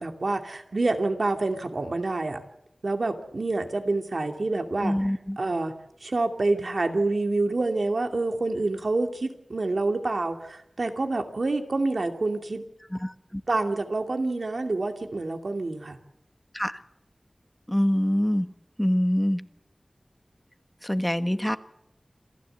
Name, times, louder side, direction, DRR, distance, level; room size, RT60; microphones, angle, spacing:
voice 1, 0.0-2.4 2.8-5.1 5.4-5.7 6.0-12.6 13.5-16.0, right 2 dB, 75° right, 5 dB, 2.5 m, -27 dB
voice 2, 4.8-5.4 12.9-13.4 16.5-16.8 17.7-18.5 18.8-19.4 20.8-21.6, equal, 10° left, 11 dB, 1.3 m, -25 dB
27.5 x 15.0 x 8.0 m, 0.80 s
wide cardioid pair, 45°, 0 cm